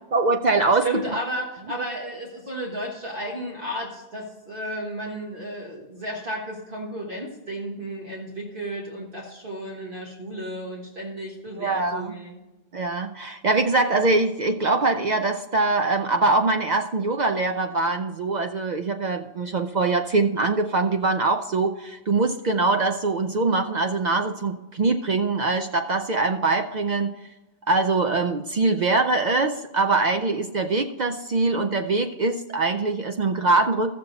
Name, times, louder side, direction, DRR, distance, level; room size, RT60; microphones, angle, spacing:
voice 1, 0.1-1.2 11.6-12.2 12.7-27.1 27.7-33.9, right 3 dB, 65° right, 6 dB, 0.4 m, -23 dB
voice 2, 0.8-12.3, right 1 dB, 45° right, -2 dB, 1.6 m, -33 dB
14.0 x 6.9 x 4.0 m, 1.1 s
omnidirectional pair, 1.3 m